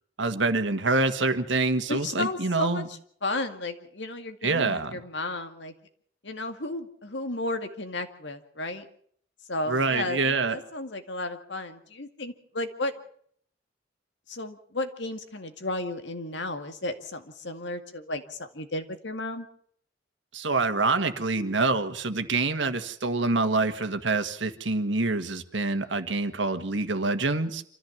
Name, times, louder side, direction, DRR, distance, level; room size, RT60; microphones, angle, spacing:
voice 1, 0.2-2.9 4.4-5.0 9.7-10.6 20.3-27.6, right 3 dB, 70° right, 9 dB, 1.7 m, -26 dB
voice 2, 1.9-5.7 6.2-8.9 9.5-12.9 14.3-19.5, left 2 dB, 65° left, 7 dB, 2.2 m, -33 dB
26.5 x 14.5 x 7.3 m, 0.63 s
head